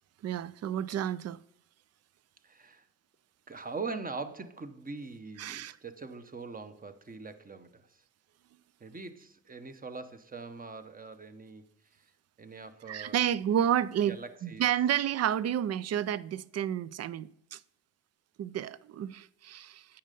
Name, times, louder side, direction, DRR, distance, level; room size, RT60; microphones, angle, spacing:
voice 1, 0.2-1.4 5.4-5.8 12.9-17.6 18.4-20.0, right 10 dB, 50° right, 0.5 m, -30 dB
voice 2, 2.4-2.8 3.5-8.0 8.8-11.6 12.4-13.2 14.0-14.6, right 4 dB, 25° right, 0.9 m, -42 dB
8.6 x 5.5 x 5.3 m
supercardioid pair, 70°, 34 cm